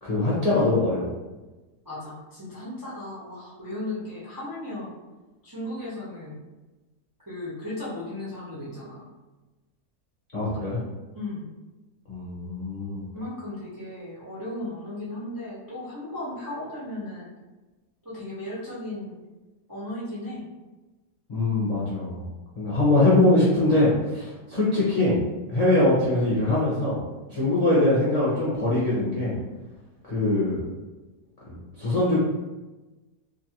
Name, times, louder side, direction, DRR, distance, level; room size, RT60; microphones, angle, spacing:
voice 1, 0.0-1.1 10.3-10.8 12.1-13.0 21.3-22.2 22.6-25.2 25.5-27.0 27.3-29.3 30.1-30.6 31.8-32.2, left 2 dB, 45° left, -9 dB, 0.4 m, -22 dB
voice 2, 1.8-4.9 5.4-6.4 7.3-9.0 11.1-11.5 13.1-17.3 18.0-19.2 19.7-20.5 27.3-27.5, left 1 dB, 30° right, -9 dB, 0.3 m, -36 dB
2.6 x 2.5 x 2.8 m, 1.1 s
omnidirectional pair, 1.7 m